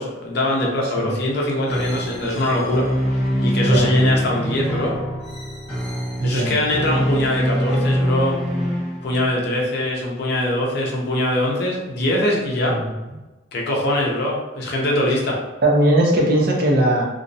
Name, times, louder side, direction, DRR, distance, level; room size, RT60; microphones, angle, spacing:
voice 1, 0.0-2.9 3.4-5.0 6.2-8.4 9.0-12.8 13.5-15.4, left 1 dB, 55° left, -2 dB, 0.5 m, -22 dB
sound 1, 1.7-9.3, equal, 5° left, 0.5 m, -23 dB
voice 2, 3.6-3.9 6.2-6.6 12.7-12.9 15.6-17.0, right 1 dB, 50° right, -1 dB, 0.5 m, -18 dB
2.5 x 2.0 x 2.6 m, 1.1 s
head